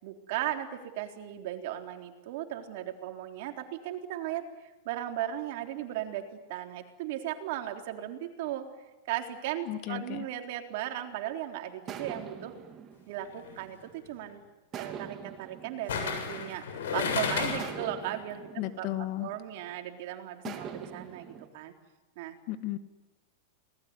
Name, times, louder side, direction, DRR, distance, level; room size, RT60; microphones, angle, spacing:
voice 1, 0.0-4.4 4.9-8.6 9.1-12.5 13.1-14.4 14.8-18.5 18.8-18.9 19.2-21.7 22.2-22.3, right 12 dB, 60° right, 4 dB, 3.7 m, -36 dB
voice 2, 9.6-10.3 18.6-19.3 20.4-20.6 22.5-22.8, left 15 dB, 45° left, 11 dB, 1.7 m, -34 dB
sound 1, 11.9-14.1 14.7-16.9 17.6-19.8 20.4-21.5, right 7 dB, 30° right, 3.1 m, -44 dB
sound 2, 13.3-13.5 15.9-17.8 18.2-18.3, left 6 dB, 90° left, 7.4 m, -32 dB
26.5 x 19.5 x 9.7 m, 1.1 s
supercardioid pair, 145°, 0 cm